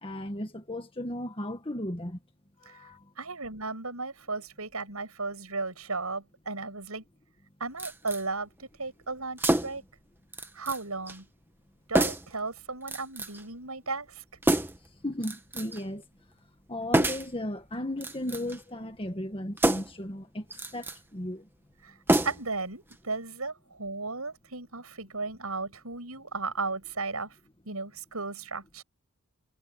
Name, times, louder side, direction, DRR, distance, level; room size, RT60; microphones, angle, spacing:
voice 1, 0.0-2.2 2.6-3.0 15.0-16.0 16.7-20.5 20.7-21.5, left 1 dB, 25° left, 1.8 m, -35 dB
voice 2, 3.2-7.0 7.6-9.8 10.5-11.3 11.9-14.2 21.8-21.9 22.2-27.3 27.7-28.8, right 3 dB, 75° right, 7.4 m, -35 dB
sound 1, 7.8-8.2 9.4-9.9 10.3-10.8 11.1-11.2 11.9-12.4 12.9-13.4 14.4-14.9 15.2-15.8 16.9-17.3 17.9-18.6 19.6-20.0 20.5-21.0 22.1-22.6 22.9-23.0, right 1 dB, 10° right, 1.4 m, -27 dB
head